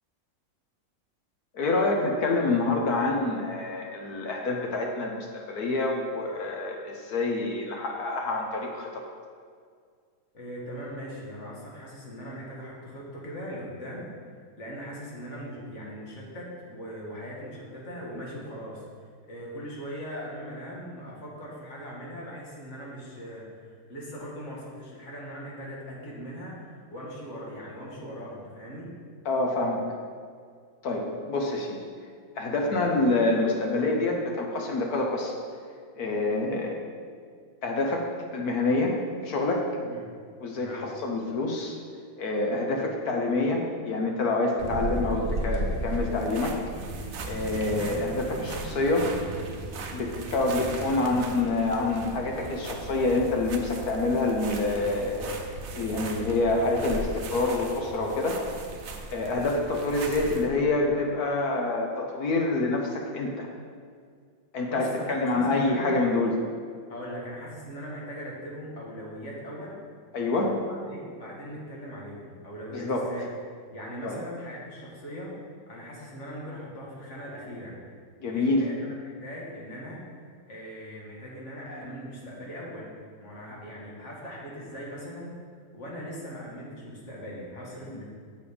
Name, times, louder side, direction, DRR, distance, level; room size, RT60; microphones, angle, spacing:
voice 1, 1.5-9.0 29.2-29.8 30.8-31.8 32.4-35.3 36.0-36.8 37.6-38.1 38.3-39.0 39.2-39.7 40.4-41.8 42.2-46.6 47.3-49.1 49.9-58.4 59.1-63.5 64.5-66.3 70.1-70.6 72.7-73.1 74.0-74.2 78.2-78.6 87.9-88.0, left 2 dB, 55° left, 1 dB, 1.2 m, -27 dB
voice 2, 10.3-14.1 14.6-18.8 19.3-28.9 32.7-32.8 39.8-40.1 40.5-40.9 64.7-65.9 66.9-69.8 70.7-73.3 73.7-75.3 75.7-77.8 78.3-80.0 80.5-82.9 83.2-85.4 85.7-88.0, equal, 40° left, -4 dB, 1.9 m, -40 dB
sound 1, 44.6-60.5, right 2 dB, 90° right, 0.6 m, -36 dB
7.0 x 6.9 x 5.1 m, 2.1 s
omnidirectional pair, 2.2 m